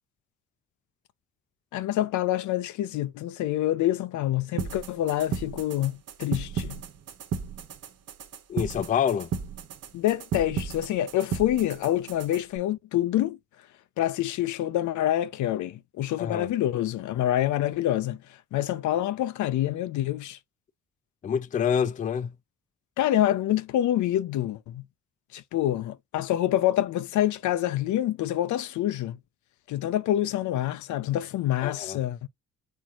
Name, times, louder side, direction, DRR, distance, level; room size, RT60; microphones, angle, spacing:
voice 1, 1.7-6.8 9.9-13.4 14.0-18.2 18.5-20.4 23.0-24.8 25.3-29.2 29.7-32.3, left 13 dB, 75° left, 0.6 m, -26 dB
sound 1, 4.6-12.6, right 6 dB, 55° right, 0.9 m, -35 dB
voice 2, 8.5-9.3 16.2-16.5 21.2-22.3 31.6-32.0, left 8 dB, 25° left, 0.3 m, -27 dB
4.5 x 3.6 x 2.9 m
cardioid pair, 90°, 30 cm